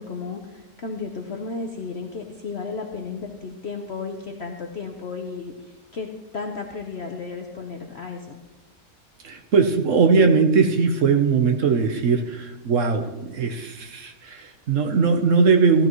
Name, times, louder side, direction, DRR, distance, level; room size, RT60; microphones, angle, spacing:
voice 1, 0.0-6.1 6.3-8.4, left 4 dB, 50° left, 2 dB, 1.0 m, -33 dB
voice 2, 9.2-15.9, right 5 dB, 55° right, 5 dB, 1.2 m, -20 dB
16.0 x 12.0 x 3.1 m, 1.1 s
omnidirectional pair, 1.7 m